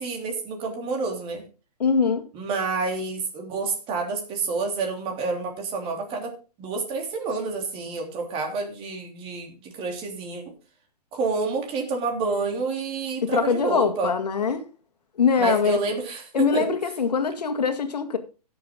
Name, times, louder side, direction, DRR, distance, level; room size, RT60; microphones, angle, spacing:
voice 1, 0.0-1.4 2.3-6.3 6.6-10.4 11.1-14.1 15.4-16.7, right 4 dB, 25° right, 3.3 m, -28 dB
voice 2, 1.8-2.2 13.2-14.7 15.2-15.8 16.3-18.2, left 5 dB, 75° left, 2.0 m, -23 dB
16.0 x 7.0 x 3.8 m
hypercardioid pair, 135°, 21 cm